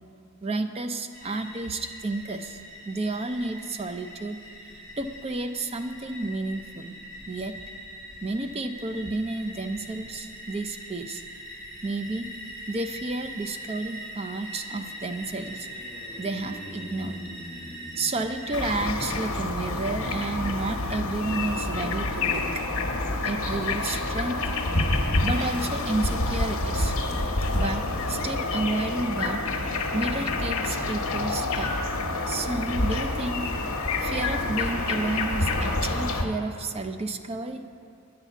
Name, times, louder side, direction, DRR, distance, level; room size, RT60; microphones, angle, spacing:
voice 1, 0.4-2.6 2.9-4.4 5.0-7.0 7.3-7.5 8.2-11.2 11.8-12.3 12.7-15.7 16.2-17.2 18.0-22.6 23.2-24.4 25.2-26.9 27.5-29.4 29.9-31.7 32.3-33.5 34.0-37.6, right 2 dB, 25° right, 8 dB, 0.4 m, -31 dB
sound 1, 1.1-18.6, equal, 40° right, 2.6 m, -42 dB
sound 2, 13.3-22.8, left 1 dB, 20° left, 1.0 m, -47 dB
sound 3, 18.5-36.3, left 2 dB, 70° left, 1.0 m, -28 dB
9.7 x 5.7 x 8.2 m, 2.5 s
head